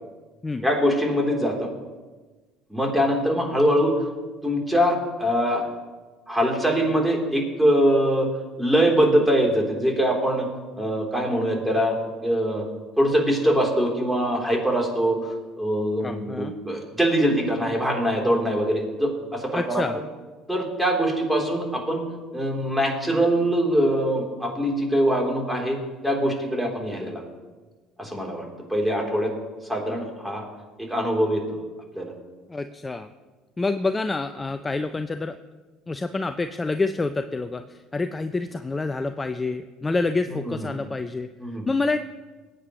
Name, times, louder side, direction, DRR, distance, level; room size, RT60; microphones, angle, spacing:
voice 1, 0.6-1.7 2.7-3.9 4.4-5.6 6.3-8.3 8.6-10.5 10.7-12.0 12.2-12.7 13.0-20.0 20.5-22.0 22.3-25.8 26.0-27.2 28.0-28.4 28.7-29.3 29.6-30.4 30.8-31.6 31.9-32.1 40.3-40.7 41.4-41.7, equal, 5° right, 0 dB, 3.6 m, -23 dB
voice 2, 16.0-16.5 19.5-20.0 32.5-33.1 33.6-35.4 35.9-41.3 41.7-42.0, left 3 dB, 20° left, 9 dB, 0.6 m, -27 dB
20.5 x 9.2 x 3.2 m, 1.3 s
hypercardioid pair, 70°, 0 cm